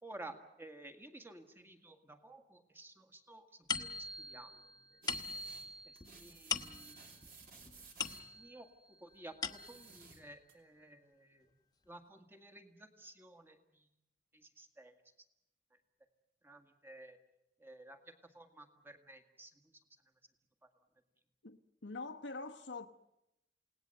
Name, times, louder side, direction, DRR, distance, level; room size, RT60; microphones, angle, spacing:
voice 1, 0.0-5.0 6.1-7.2 8.4-11.5 11.9-13.9 14.3-14.9 16.4-17.2 17.6-19.7, right 2 dB, 15° right, 1.8 m, -54 dB
sound 1, 3.7-8.7 9.1-10.0, left 5 dB, 20° left, 1.1 m, -42 dB
sound 2, 5.0-5.7 5.9-8.3 9.4-10.5, right 4 dB, 55° right, 3.7 m, -57 dB
voice 2, 21.4-22.9, left 3 dB, 85° left, 1.1 m, -45 dB
28.5 x 18.5 x 7.9 m
head